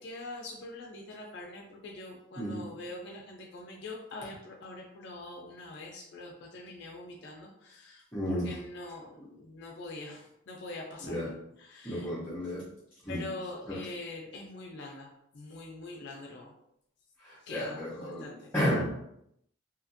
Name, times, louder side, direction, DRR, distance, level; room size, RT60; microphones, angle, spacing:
voice 1, 0.0-11.2 11.6-12.1 13.1-16.5 17.4-18.5, left 2 dB, 55° left, -1 dB, 0.4 m, -44 dB
voice 2, 8.1-8.5 11.0-11.3 11.8-12.6 13.0-13.2 13.7-13.8 17.2-18.3 18.5-18.9, equal, 10° left, -10 dB, 0.6 m, -32 dB
2.7 x 2.4 x 2.5 m, 0.77 s
head